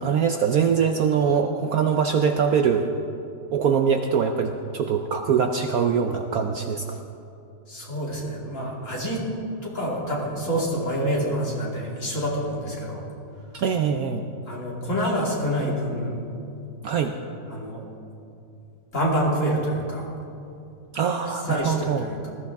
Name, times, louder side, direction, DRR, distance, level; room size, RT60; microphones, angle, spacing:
voice 1, 0.0-2.9 3.5-7.0 13.5-14.2 16.8-17.1 20.9-22.1, right 6 dB, 65° right, 5 dB, 1.0 m, -23 dB
voice 2, 7.7-9.2 9.6-13.0 14.5-16.1 17.5-17.8 18.9-20.1 21.3-22.3, equal, 40° left, -4 dB, 3.0 m, -27 dB
19.5 x 14.0 x 3.5 m, 2.8 s
omnidirectional pair, 2.0 m